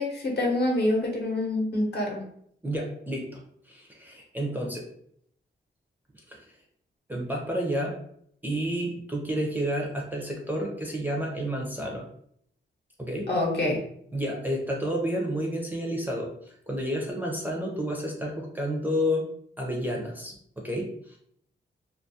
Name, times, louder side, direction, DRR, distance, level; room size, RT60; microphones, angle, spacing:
voice 1, 0.0-2.2 13.3-13.8, left 1 dB, 60° left, -1 dB, 0.8 m, -26 dB
voice 2, 2.6-3.4 3.6-4.9 6.3-6.4 7.1-8.0 8.4-12.0 13.0-13.3 14.1-19.3 19.6-21.2, equal, 10° right, -2 dB, 0.4 m, -30 dB
2.3 x 2.3 x 2.7 m, 0.68 s
wide cardioid pair, 140°, 19 cm